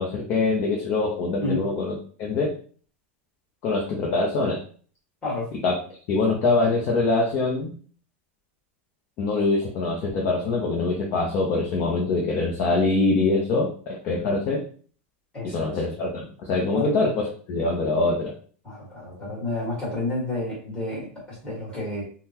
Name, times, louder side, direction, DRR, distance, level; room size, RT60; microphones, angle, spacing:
voice 1, 0.0-2.5 3.6-4.6 5.6-5.8 6.1-7.7 9.2-14.6 15.5-18.3, left 3 dB, 30° left, -2 dB, 0.6 m, -24 dB
voice 2, 15.3-15.8 16.7-16.9 18.6-22.0, left 2 dB, 10° left, -7 dB, 1.6 m, -30 dB
3.7 x 2.1 x 2.8 m, 0.43 s
supercardioid pair, 170°, 7 cm